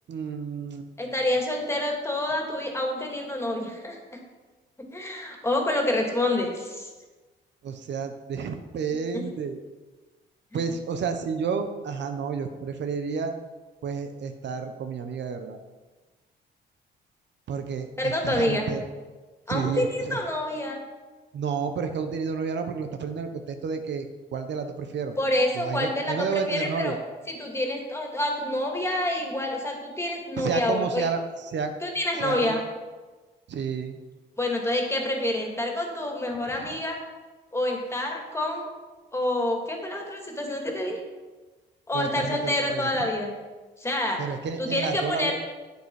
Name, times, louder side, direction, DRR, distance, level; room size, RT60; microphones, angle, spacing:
voice 1, 0.1-1.1 7.6-9.6 10.5-13.3 13.8-15.6 17.5-18.8 19.5-20.2 21.3-24.1 24.3-25.2 25.5-27.0 30.4-31.7 32.2-32.6 33.5-34.0 36.5-36.7 41.9-43.1 44.2-45.3, right 6 dB, 65° right, 7 dB, 1.0 m, -31 dB
voice 2, 1.0-4.0 4.9-6.9 10.5-10.6 18.0-18.7 19.5-20.8 25.2-27.0 27.3-31.0 31.8-32.6 34.4-37.0 37.5-38.7 39.1-41.0 41.9-43.3 43.8-44.2 44.6-45.3, left 1 dB, 15° left, 1 dB, 2.5 m, -27 dB
10.5 x 8.5 x 4.8 m, 1.3 s
cardioid pair, 90°, 20 cm